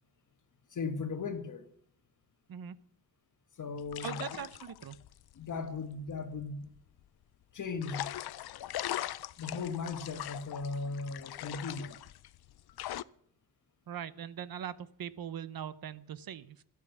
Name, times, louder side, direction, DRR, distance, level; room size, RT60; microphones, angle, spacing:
voice 1, 0.7-1.7 3.6-4.2 5.4-6.7 7.5-8.1 9.4-12.0, left 4 dB, 55° left, 1.3 m, -37 dB
sound 1, 3.8-7.0 7.8-13.0, left 13 dB, 85° left, 0.5 m, -41 dB
voice 2, 4.0-5.0 13.9-16.6, right 9 dB, 70° right, 0.8 m, -41 dB
12.0 x 8.5 x 7.0 m
wide cardioid pair, 180°, 37 cm